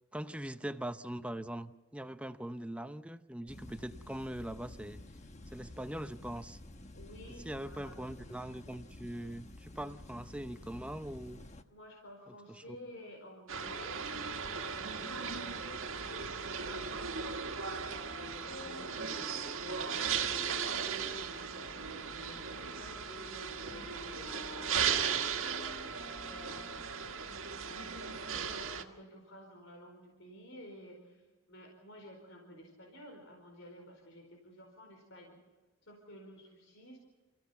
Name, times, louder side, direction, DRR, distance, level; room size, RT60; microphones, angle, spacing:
voice 1, 0.1-5.0 5.5-6.6 7.3-11.4 12.3-12.8, right 1 dB, 5° right, 10 dB, 0.7 m, -42 dB
sound 1, 3.5-11.6, left 1 dB, 35° left, 1.2 m, -51 dB
voice 2, 6.9-8.0 11.7-17.3 17.6-18.1 18.4-35.4 35.8-37.0, equal, 70° left, 1 dB, 4.7 m, -52 dB
sound 2, 13.5-28.8, right 6 dB, 80° right, 1.7 m, -37 dB
Wind instrument woodwind instrument, 17.9-26.9, left 2 dB, 20° left, 1.4 m, -52 dB
29.5 x 15.5 x 7.1 m, 1.2 s
head